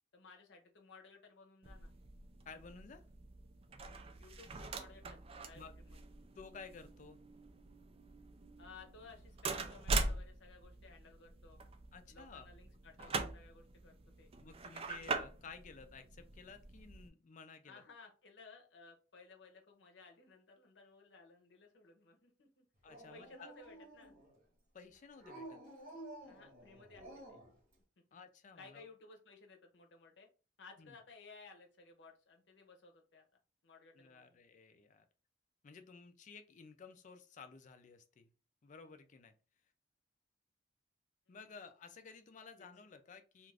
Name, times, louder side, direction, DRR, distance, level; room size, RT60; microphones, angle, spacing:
voice 1, 0.1-1.9 4.2-6.0 8.6-11.6 12.1-14.3 17.6-22.6 23.1-24.1 26.2-27.4 28.0-28.1 28.6-30.3 30.6-33.2 33.6-34.4 41.3-41.7 42.6-42.7, left 4 dB, 70° left, 2 dB, 0.7 m, -58 dB
sound 1, 1.6-17.1, right 3 dB, 30° right, 0.3 m, -43 dB
voice 2, 2.5-3.0 5.5-5.7 6.4-7.2 11.9-12.5 13.0-13.2 14.4-17.8 22.8-23.5 24.7-25.6 28.1-28.8 30.8-31.0 33.9-35.1 35.6-38.3 38.6-39.3 41.3-43.5, left 5 dB, 45° left, 9 dB, 0.4 m, -54 dB
Dog, 22.9-24.4 25.2-27.5, right 1 dB, 50° right, 1.0 m, -52 dB
2.4 x 2.4 x 3.2 m, 0.34 s
head